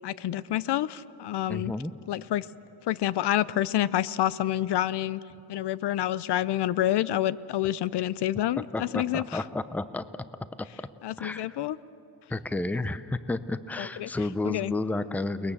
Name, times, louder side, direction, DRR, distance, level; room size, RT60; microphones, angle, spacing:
voice 1, 0.0-1.7 2.1-2.5 2.9-5.2 5.5-9.4 11.0-11.8 13.8-14.1 14.4-14.7, left 13 dB, 75° left, 18 dB, 0.6 m, -28 dB
voice 2, 1.5-1.9 8.7-10.0 11.2-11.6 12.3-15.5, left 2 dB, 5° left, 13 dB, 0.6 m, -31 dB
30.0 x 20.5 x 7.3 m, 2.9 s
wide cardioid pair, 150°, 41 cm